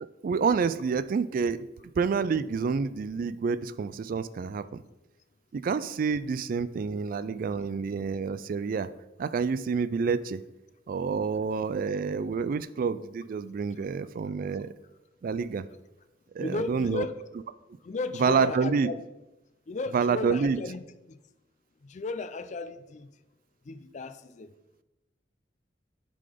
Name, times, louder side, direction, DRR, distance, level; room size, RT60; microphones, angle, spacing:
voice 1, 0.0-1.7 2.0-4.8 5.5-8.9 9.2-10.4 10.9-14.7 15.2-15.7 16.3-17.1 18.2-18.9 19.9-20.6, right 5 dB, 50° right, 14 dB, 0.3 m, -28 dB
voice 2, 16.4-17.1 17.8-19.0 19.7-21.2 21.8-23.1 23.7-24.5, left 3 dB, 40° left, 13 dB, 0.4 m, -35 dB
11.5 x 3.8 x 5.0 m, 1.0 s
head